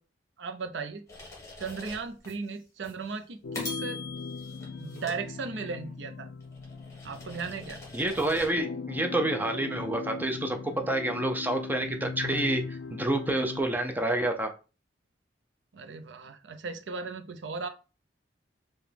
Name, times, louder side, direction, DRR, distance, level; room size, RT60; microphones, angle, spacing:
voice 1, 0.4-1.0 1.6-4.0 4.8-6.3 7.0-7.8 15.7-17.7, right 4 dB, 70° right, 8 dB, 0.5 m, -36 dB
sound 1, 1.1-2.3 2.8-3.0 3.5-5.9 6.4-8.6, left 3 dB, 15° left, 1.5 m, -43 dB
sound 2, 3.4-13.6, left 4 dB, 65° left, 0.4 m, -39 dB
voice 2, 7.9-14.5, right 1 dB, 10° right, 4 dB, 0.5 m, -28 dB
4.9 x 2.2 x 3.3 m, 0.33 s
head